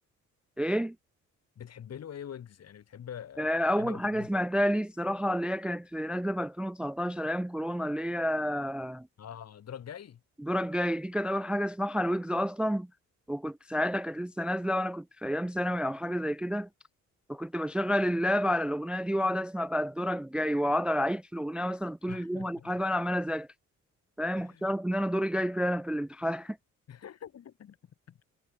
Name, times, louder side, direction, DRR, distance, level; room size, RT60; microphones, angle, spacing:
voice 1, 0.6-1.0 3.4-9.1 10.4-12.9 13.3-16.7 17.3-23.5 24.2-26.6, equal, 5° right, 0.4 m, -30 dB
voice 2, 1.6-4.3 9.2-10.2 22.1-22.7 24.4-24.7 26.9-27.8 28.1-28.2, left 9 dB, 55° left, 2.8 m, -44 dB
cardioid pair, 90°, 30 cm